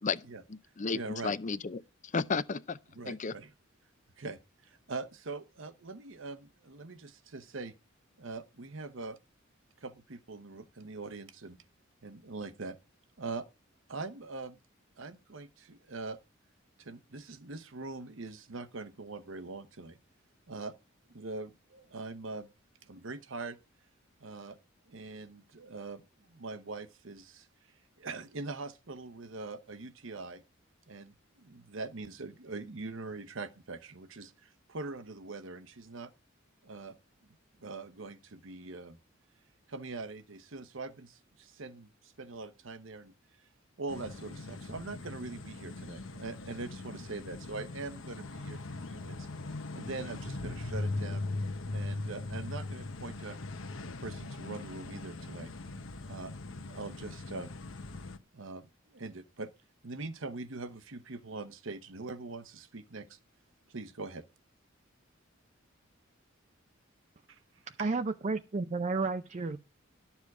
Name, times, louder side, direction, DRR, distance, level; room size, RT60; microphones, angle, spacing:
voice 1, 0.0-1.8 2.1-2.8 3.1-3.3, left 4 dB, 40° left, 0.6 m, -33 dB
voice 2, 0.9-1.3 2.9-3.5 4.2-7.7 8.2-9.2 9.8-11.6 12.0-12.8 13.2-13.5 13.9-14.6 15.0-16.2 16.8-20.0 20.5-20.7 21.1-22.5 22.8-23.6 24.2-24.6 24.9-26.0 26.3-27.5 28.0-30.4 30.9-36.1 36.6-37.0 37.6-39.0 39.7-43.1 43.8-49.3 49.7-51.2 51.7-53.4 53.8-55.5 56.0-57.5 58.3-59.5 59.8-63.2 63.7-64.2 67.3-67.4, right 3 dB, 70° right, 1.0 m, -42 dB
sound 1, 43.9-58.2, left 2 dB, 75° left, 1.1 m, -40 dB
voice 3, 67.8-69.6, right 3 dB, 35° right, 0.5 m, -32 dB
12.0 x 7.2 x 4.8 m
head